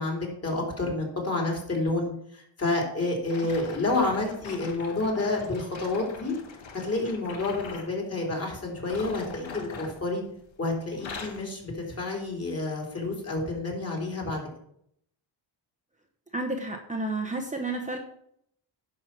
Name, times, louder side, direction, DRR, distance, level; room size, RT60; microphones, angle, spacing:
voice 1, 0.0-6.3 6.8-10.2 10.6-14.4, left 2 dB, 30° left, -1 dB, 3.4 m, -29 dB
sound 1, 3.3-7.9 8.8-10.6 10.9-11.5 12.1-12.3 13.0-13.1, left 4 dB, 80° left, 1.8 m, -42 dB
voice 2, 16.3-18.0, right 2 dB, 15° right, 2 dB, 0.9 m, -31 dB
10.5 x 5.7 x 6.0 m, 0.71 s
wide cardioid pair, 130°, 45 cm